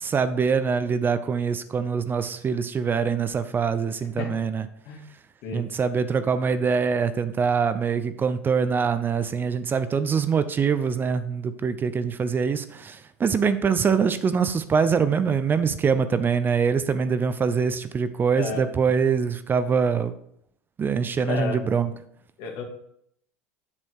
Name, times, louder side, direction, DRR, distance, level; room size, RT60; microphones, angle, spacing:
voice 1, 0.0-4.7 5.5-20.1 20.8-21.9, right 6 dB, 25° right, 0.6 m, -24 dB
voice 2, 21.2-21.6 22.4-22.6, left 5 dB, 60° left, 1.9 m, -31 dB
7.4 x 6.3 x 4.5 m
hypercardioid pair, 85°, 8 cm